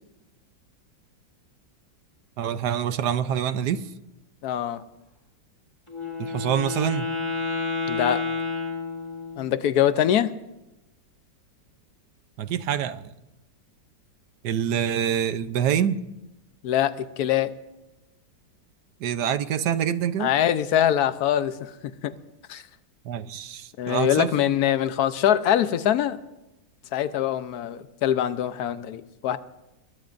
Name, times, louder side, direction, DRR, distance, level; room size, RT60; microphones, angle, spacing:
voice 1, 2.4-3.8 6.2-7.1 12.4-13.1 14.4-16.0 19.0-20.3 23.0-24.3, right 9 dB, 70° right, 12 dB, 1.3 m, -26 dB
voice 2, 4.4-4.8 7.9-8.2 9.4-10.3 16.6-17.5 20.2-21.7 22.0-22.1 22.5-22.6 23.8-26.2 26.9-29.4, left 10 dB, 65° left, 12 dB, 1.2 m, -23 dB
Wind instrument woodwind instrument, 5.9-9.5, left 4 dB, 15° left, 2.7 m, -30 dB
25.0 x 21.5 x 2.6 m, 0.96 s
omnidirectional pair, 1.9 m